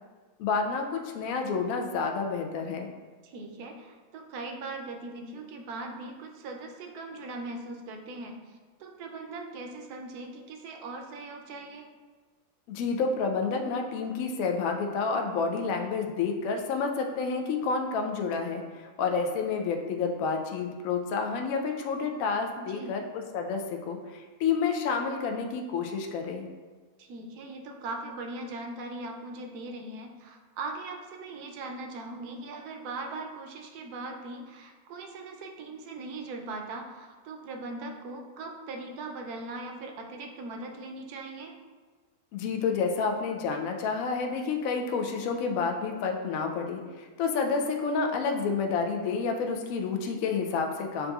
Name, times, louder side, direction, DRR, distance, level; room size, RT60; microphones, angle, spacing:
voice 1, 0.4-2.9 12.7-26.5 42.3-51.1, left 5 dB, 70° left, 3 dB, 0.9 m, -29 dB
voice 2, 3.2-11.9 22.6-23.0 27.0-41.5, right 2 dB, 85° right, 3 dB, 1.1 m, -40 dB
7.5 x 2.6 x 2.3 m, 1.4 s
omnidirectional pair, 1.6 m